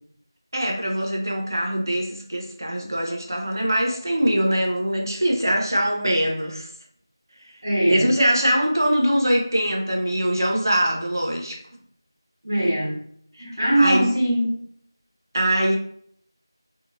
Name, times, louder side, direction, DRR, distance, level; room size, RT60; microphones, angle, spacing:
voice 1, 0.5-6.7 7.9-11.6 13.8-14.1 15.3-15.8, equal, 55° right, 0 dB, 0.6 m, -22 dB
voice 2, 7.6-8.1 12.4-13.0 13.4-14.6, right 1 dB, 30° right, -8 dB, 1.1 m, -21 dB
2.7 x 2.4 x 2.7 m, 0.64 s
figure-of-eight pair, 180°, 2 cm